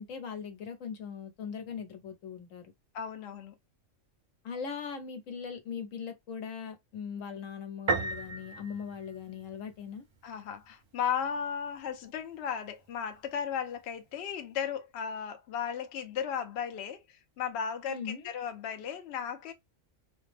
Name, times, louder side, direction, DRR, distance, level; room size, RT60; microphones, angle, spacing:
voice 1, 0.0-2.6 4.4-10.0 17.8-18.3, left 6 dB, 90° left, 1.2 m, -40 dB
voice 2, 2.9-3.5 10.2-19.5, left 7 dB, 65° left, 0.8 m, -35 dB
Piano, 7.9-9.7, right 4 dB, 45° right, 0.3 m, -34 dB
4.1 x 2.0 x 3.3 m
omnidirectional pair, 1.3 m